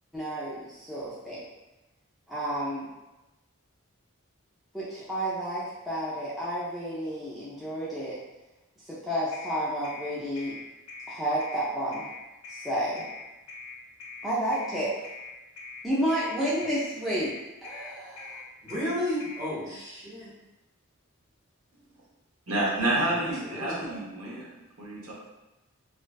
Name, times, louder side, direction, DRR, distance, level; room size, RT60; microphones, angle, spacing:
voice 1, 0.1-1.4 2.3-2.9 4.7-8.2 8.9-10.5 11.1-12.0 12.5-13.1 14.2-14.9 15.8-17.3 17.6-18.4, equal, ahead, -9 dB, 0.3 m, -31 dB
sound 1, 9.3-19.5, left 4 dB, 75° left, 0.4 m, -43 dB
voice 2, 18.6-20.3 22.8-24.0, left 1 dB, 20° right, -8 dB, 0.8 m, -34 dB
voice 3, 22.5-24.5 24.8-25.1, right 1 dB, 80° right, -4 dB, 0.6 m, -29 dB
2.5 x 2.2 x 2.2 m, 1.0 s
head